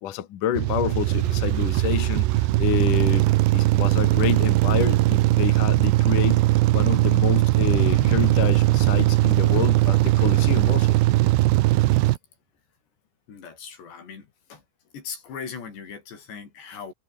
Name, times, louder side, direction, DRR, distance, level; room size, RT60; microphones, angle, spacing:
voice 1, 0.0-3.3 3.5-6.4 6.7-11.0, left 10 dB, 60° left, 2.9 m, -28 dB
sound 1, 0.5-12.2, right 18 dB, 85° right, 3.0 m, -20 dB
sound 2, 1.1-4.8 7.7-11.5, right 2 dB, 15° right, 1.1 m, -40 dB
voice 2, 13.3-14.7 14.9-16.9, left 6 dB, 85° left, 7.2 m, -39 dB
omnidirectional pair, 4.8 m